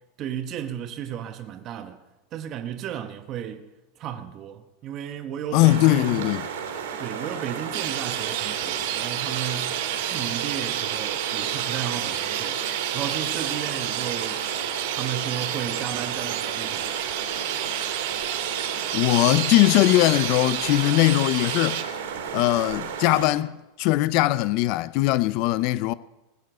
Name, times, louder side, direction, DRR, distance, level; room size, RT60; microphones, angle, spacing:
voice 1, 0.2-2.0 2.3-3.7 4.0-6.3 7.0-12.6 12.9-14.4 14.9-16.9, right 10 dB, 30° right, 1.0 m, -34 dB
voice 2, 5.5-6.5 18.9-21.8 22.3-23.5 23.8-25.9, left 17 dB, 45° left, 0.4 m, -20 dB
sound 1, 5.6-23.3, right 6 dB, 85° right, 2.9 m, -33 dB
Chirp tweet, 7.7-21.8, right 12 dB, 60° right, 1.5 m, -30 dB
19.0 x 6.7 x 7.9 m
supercardioid pair, 160°, 0 cm